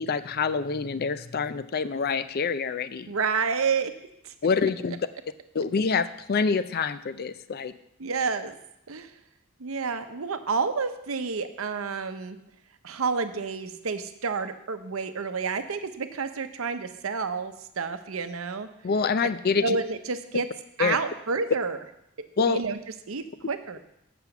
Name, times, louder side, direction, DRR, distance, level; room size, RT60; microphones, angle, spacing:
voice 1, 0.0-3.1 4.4-5.0 5.5-7.7 18.8-19.8 20.8-21.0 22.4-22.6, left 5 dB, 50° left, 13 dB, 0.5 m, -26 dB
voice 2, 3.1-3.9 4.2-4.3 8.0-8.6 8.9-9.1 9.6-12.4 12.8-18.7 19.6-20.5 20.8-21.8 22.5-22.8 23.1-23.8, right 5 dB, 80° right, 9 dB, 0.8 m, -29 dB
7.8 x 6.0 x 7.0 m, 0.80 s
head